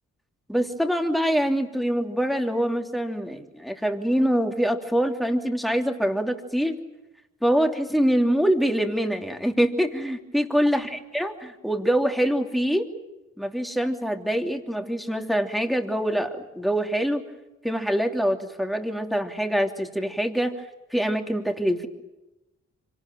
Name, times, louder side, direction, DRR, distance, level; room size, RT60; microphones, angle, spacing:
voice 1, 0.5-6.8 7.4-11.3 11.6-12.9 13.4-17.2 17.6-20.5 20.9-21.9, equal, ahead, 3 dB, 3.0 m, -24 dB
25.5 x 19.0 x 9.3 m, 1.0 s
cardioid pair, 50°, 32 cm